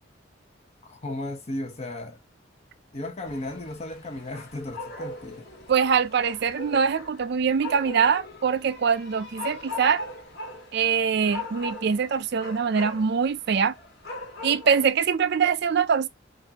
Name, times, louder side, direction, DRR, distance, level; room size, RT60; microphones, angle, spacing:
voice 1, 0.8-2.2 2.9-5.5, left 1 dB, 35° left, 1.0 m, -35 dB
Barrio Noche Neighborhood Night, 3.3-14.9, left 2 dB, 55° left, 1.8 m, -40 dB
voice 2, 5.7-10.0 10.7-13.7 14.4-16.1, right 6 dB, 55° right, 0.4 m, -23 dB
6.4 x 2.6 x 2.8 m
head